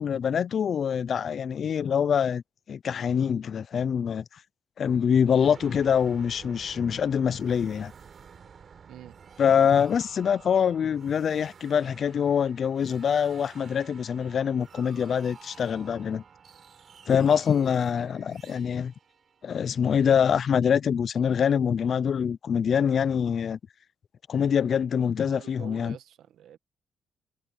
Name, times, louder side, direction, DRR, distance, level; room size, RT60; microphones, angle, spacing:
voice 1, 0.0-2.4 2.7-4.2 4.8-7.9 9.4-16.2 17.1-18.9 19.4-23.6 24.3-25.9, left 7 dB, 55° left, 0.5 m, -24 dB
sound 1, 5.4-20.0, right 6 dB, 50° right, 4.0 m, -50 dB
voice 2, 8.9-9.2 25.2-26.6, right 11 dB, 75° right, 1.3 m, -46 dB
cardioid pair, 90°, 0 cm